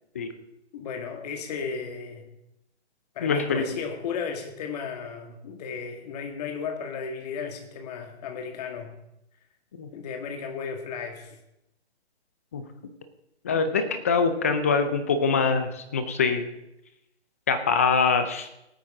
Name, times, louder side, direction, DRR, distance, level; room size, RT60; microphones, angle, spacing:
voice 1, 0.7-2.3 3.2-9.0 9.9-11.4, left 6 dB, 35° left, 4 dB, 2.0 m, -34 dB
voice 2, 3.2-3.6 9.8-9.9 12.5-12.6 13.4-16.5 17.5-18.5, left 5 dB, 15° left, 9 dB, 0.4 m, -24 dB
19.5 x 8.6 x 3.7 m, 0.85 s
hypercardioid pair, 145°, 34 cm